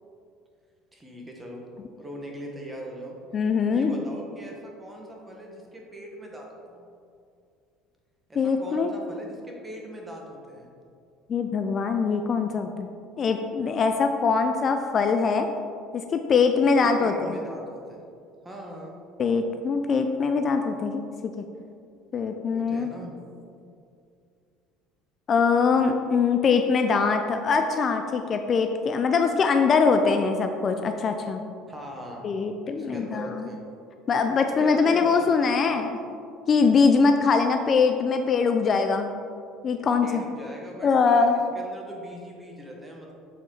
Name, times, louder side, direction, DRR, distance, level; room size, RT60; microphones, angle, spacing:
voice 1, 0.9-1.6 2.0-3.2 3.7-6.9 8.3-10.7 16.8-18.0 18.4-18.9 22.5-23.4 31.7-32.2 32.7-33.6 34.6-35.8 40.0-43.1, equal, 15° right, -1 dB, 1.4 m, -41 dB
voice 2, 3.3-3.9 8.4-8.9 11.3-12.9 13.2-15.5 15.9-17.4 19.2-21.5 22.1-22.9 25.3-31.4 32.2-33.5 34.1-36.0 36.5-39.1 39.6-40.2 40.8-41.4, left 5 dB, 40° left, 6 dB, 0.4 m, -22 dB
7.1 x 4.3 x 3.9 m, 2.4 s
supercardioid pair, 95°, 0 cm